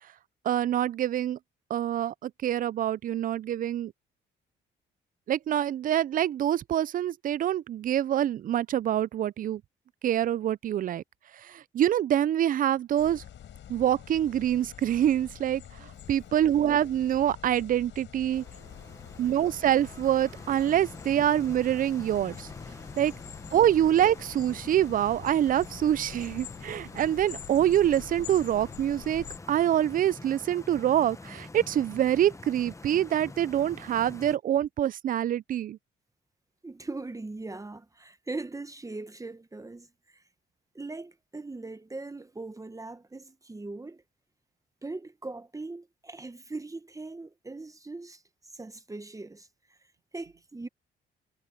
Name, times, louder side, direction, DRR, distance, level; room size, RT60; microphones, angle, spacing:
voice 1, 0.4-1.4 1.7-3.9 5.3-9.6 10.0-11.0 11.4-13.2 13.7-18.4 19.2-22.5 23.0-23.1 23.5-35.8, right 11 dB, 45° right, 0.4 m, -26 dB
sound 1, 12.8-23.7, right 10 dB, 65° right, 4.3 m, -63 dB
sound 2, 13.0-29.4, left 10 dB, 70° left, 4.6 m, -46 dB
Stream, 18.3-34.4, left 3 dB, 15° left, 0.9 m, -46 dB
voice 2, 36.6-40.2 40.7-44.0 44.8-48.2 48.5-49.8 50.1-50.7, right 3 dB, 15° right, 1.1 m, -40 dB
cardioid pair, 90°, 20 cm